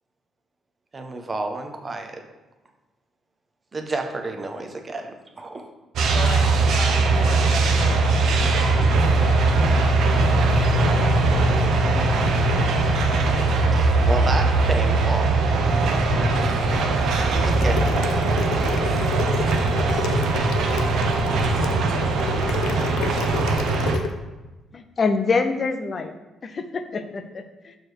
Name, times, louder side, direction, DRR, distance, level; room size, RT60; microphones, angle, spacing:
voice 1, 0.9-2.2 3.7-5.7 13.7-15.6 17.0-18.0, right 2 dB, 20° right, 4 dB, 0.6 m, -30 dB
sound 1, 6.0-24.0, right 3 dB, 65° right, 0.7 m, -20 dB
voice 2, 6.1-9.4 9.7-11.3, left 4 dB, 55° left, 2 dB, 0.9 m, -37 dB
sound 2, 17.4-24.1, left 6 dB, 90° left, 0.5 m, -30 dB
voice 3, 24.7-26.1 26.4-27.8, left 4 dB, 30° left, 8 dB, 0.4 m, -25 dB
6.6 x 3.2 x 4.5 m, 1.1 s
cardioid pair, 150°, 0 cm